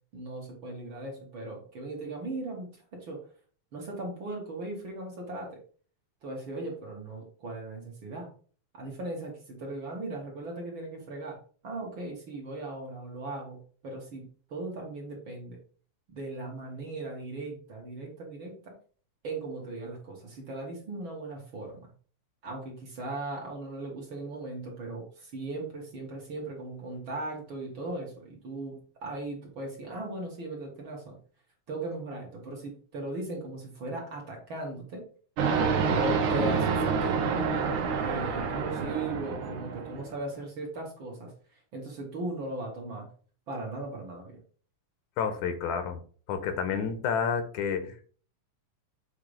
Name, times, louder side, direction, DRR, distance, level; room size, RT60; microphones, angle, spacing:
voice 1, 0.1-3.3 3.7-5.6 6.2-8.3 8.7-11.4 11.6-15.6 16.1-18.8 19.2-21.8 22.4-31.2 31.7-35.1 36.0-43.1 43.5-44.4, right 2 dB, 45° right, -1 dB, 2.4 m, -38 dB
sound 1, 35.4-40.1, right 5 dB, 80° right, 2.6 m, -28 dB
voice 2, 45.2-46.0 46.3-48.1, left 6 dB, 80° left, 8 dB, 2.3 m, -30 dB
7.5 x 3.7 x 5.0 m, 0.42 s
omnidirectional pair, 3.5 m